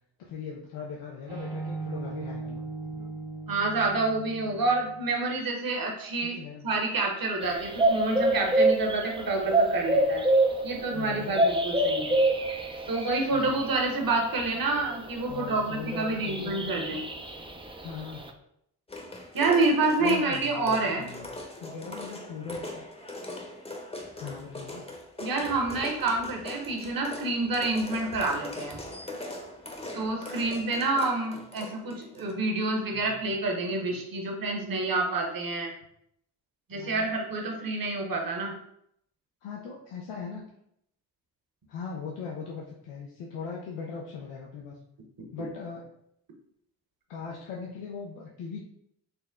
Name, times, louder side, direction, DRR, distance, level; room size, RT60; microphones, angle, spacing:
voice 1, 0.2-2.6 6.2-6.7 10.9-11.4 13.3-13.6 15.3-17.1 17.8-18.2 20.0-21.3 21.6-22.8 24.2-24.8 32.9-33.3 36.7-37.1 39.4-40.4 41.7-44.8 45.3-45.9 47.1-48.6, left 5 dB, 85° left, -2 dB, 0.7 m, -39 dB
sound 1, 1.3-5.1, right 3 dB, 75° right, 1.5 m, -38 dB
voice 2, 3.5-6.4 6.6-10.2 10.6-12.2 12.9-17.0 19.3-21.1 25.2-28.8 29.9-35.7 36.7-38.5, right 3 dB, 45° right, 1 dB, 1.2 m, -28 dB
sound 2, 7.4-15.6 16.2-18.3, right 1 dB, 10° right, 0.5 m, -26 dB
sound 3, 18.9-32.3, left 2 dB, 10° left, 0.8 m, -41 dB
4.2 x 2.1 x 3.6 m, 0.74 s
supercardioid pair, 45°, 50 cm